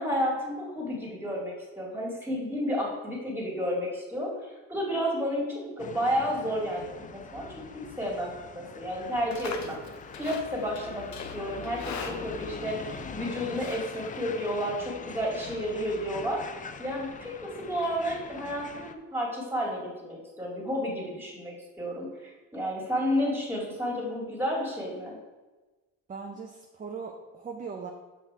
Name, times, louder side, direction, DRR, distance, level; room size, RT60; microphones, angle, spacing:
voice 1, 0.0-7.6 8.0-9.8 10.2-16.4 16.8-25.1, equal, 5° right, -2 dB, 2.0 m, -31 dB
sound 1, 5.8-18.9, left 6 dB, 25° left, 0.4 m, -43 dB
Livestock farm animals working animals, 9.0-14.7, left 5 dB, 55° left, 0.9 m, -43 dB
voice 2, 26.1-27.9, right 5 dB, 25° right, 2 dB, 0.7 m, -39 dB
5.9 x 5.9 x 4.6 m, 1.2 s
cardioid pair, 120°, 34 cm